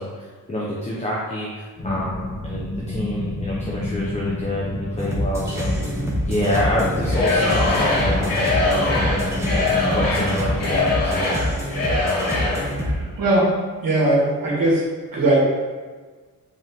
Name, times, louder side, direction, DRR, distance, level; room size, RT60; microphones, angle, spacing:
voice 1, 0.0-6.0 6.3-9.3 9.9-11.4, left 1 dB, 20° left, -5 dB, 1.0 m, -27 dB
sound 1, 1.8-10.9, left 1 dB, 50° left, 2.0 m, -30 dB
sound 2, 5.0-12.9, equal, 10° right, 1.3 m, -26 dB
Singing / Crowd, 7.0-12.7, left 3 dB, 90° left, 1.7 m, -23 dB
voice 2, 12.8-13.5 13.8-14.8 15.1-15.6, right 1 dB, 80° right, -6 dB, 2.1 m, -19 dB
8.0 x 4.6 x 3.7 m, 1.4 s
wide cardioid pair, 150°, 33 cm